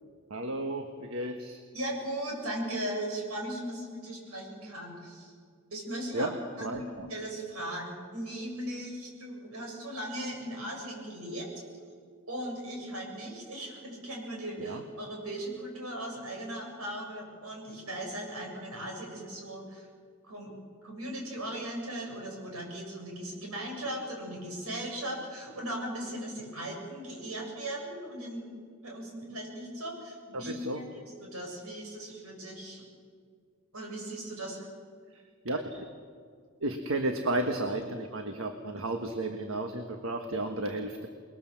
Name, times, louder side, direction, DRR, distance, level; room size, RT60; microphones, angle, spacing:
voice 1, 0.3-1.6 6.1-6.3 6.6-7.1 14.6-14.8 30.3-30.8 35.1-35.9 36.6-41.1, right 1 dB, 65° right, 5 dB, 1.5 m, -33 dB
voice 2, 1.7-5.3 5.7-6.3 6.6-6.8 7.1-11.5 12.3-19.9 20.2-20.5 20.8-28.5 28.8-32.8 33.7-34.7, right 1 dB, 80° right, 0 dB, 7.7 m, -38 dB
28.0 x 21.0 x 7.6 m, 2.1 s
head